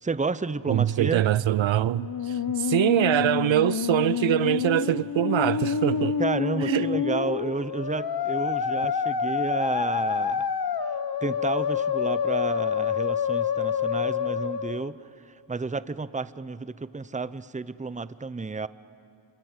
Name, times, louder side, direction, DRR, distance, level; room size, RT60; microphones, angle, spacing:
voice 1, 0.0-1.2 6.2-10.5 11.2-15.0 15.2-18.7, right 4 dB, 15° right, 0.7 m, -31 dB
voice 2, 0.7-6.2 6.7-6.9, right 13 dB, 70° right, 0.5 m, -24 dB
Musical instrument, 1.9-14.9, left 7 dB, 50° left, 1.1 m, -27 dB
27.0 x 25.5 x 8.1 m
cardioid pair, 70°, 48 cm